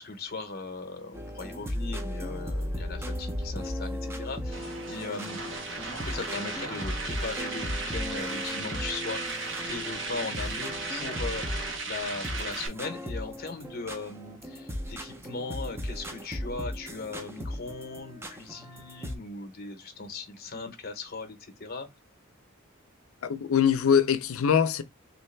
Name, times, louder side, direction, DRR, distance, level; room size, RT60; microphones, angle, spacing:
voice 1, 0.0-5.4 5.9-21.9, left 3 dB, 45° left, 0.8 m, -38 dB
sound 1, 1.1-11.9 12.2-19.1, equal, 10° right, 0.6 m, -36 dB
sound 2, 4.5-12.7, right 3 dB, 60° right, 1.1 m, -36 dB
voice 2, 23.2-24.8, left 7 dB, 75° left, 0.5 m, -23 dB
3.3 x 2.9 x 3.2 m
head